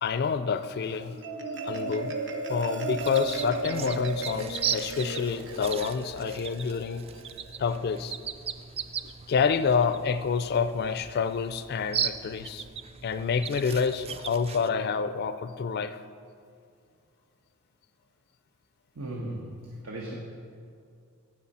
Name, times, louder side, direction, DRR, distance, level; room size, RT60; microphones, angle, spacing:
voice 1, 0.0-1.2 1.6-2.2 2.5-7.1 7.6-8.1 9.3-12.6 13.0-16.0, left 5 dB, 50° left, 12 dB, 0.4 m, -28 dB
Marimba xylophone, 0.9-7.6, right 2 dB, 60° right, 0.9 m, -35 dB
sound 1, 3.0-14.7, right 7 dB, 30° right, 0.3 m, -37 dB
voice 2, 18.9-20.1, right 1 dB, 80° right, -2 dB, 1.2 m, -37 dB
15.5 x 6.4 x 4.2 m, 2.3 s
head